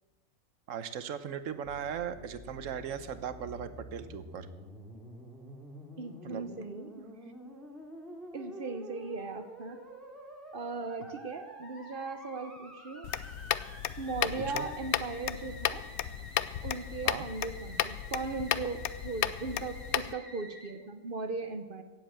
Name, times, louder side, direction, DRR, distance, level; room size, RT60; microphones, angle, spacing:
voice 1, 0.7-4.5 6.2-7.3 14.4-14.7 17.0-17.2 20.8-20.9, right 8 dB, 65° right, 12 dB, 1.2 m, -39 dB
Musical instrument, 1.6-20.7, equal, ahead, 2.4 m, -49 dB
voice 2, 6.0-7.1 8.3-9.8 10.5-13.1 14.0-15.9 16.6-21.8, right 3 dB, 40° right, 9 dB, 0.9 m, -38 dB
sound 1, 13.0-20.1, left 12 dB, 75° left, 1.0 m, -34 dB
17.0 x 7.7 x 7.5 m, 1.2 s
omnidirectional pair, 1.6 m